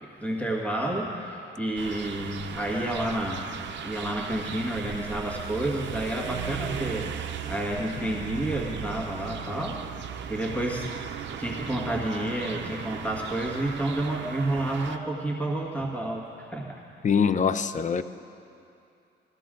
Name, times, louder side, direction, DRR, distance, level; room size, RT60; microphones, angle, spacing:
voice 1, 0.0-3.5 3.8-7.1 7.5-10.9 11.4-16.8, right 1 dB, 5° left, -2 dB, 1.8 m, -30 dB
sound 1, 1.8-15.0, right 8 dB, 65° right, 0.7 m, -37 dB
voice 2, 17.0-18.0, left 6 dB, 40° left, 13 dB, 0.5 m, -23 dB
16.5 x 14.0 x 3.8 m, 2.6 s
cardioid pair, 90°, 20 cm